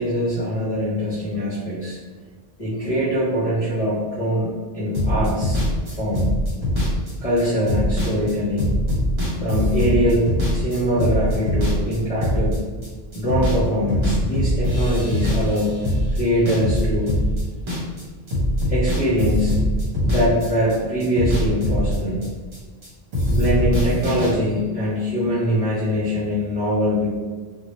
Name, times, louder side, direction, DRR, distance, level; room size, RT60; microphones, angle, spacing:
voice 1, 0.0-2.0 2.6-5.6 5.9-6.3 7.2-8.8 9.4-10.3 10.5-12.6 13.1-15.8 16.1-17.2 18.7-19.6 20.0-22.2 23.3-27.1, equal, 40° left, -10 dB, 0.6 m, -23 dB
sound 1, 4.9-13.6 13.9-18.0 18.3-22.9 23.1-24.3, equal, 60° right, 1.0 m, -22 dB
2.1 x 2.0 x 2.8 m, 1.4 s
omnidirectional pair, 1.0 m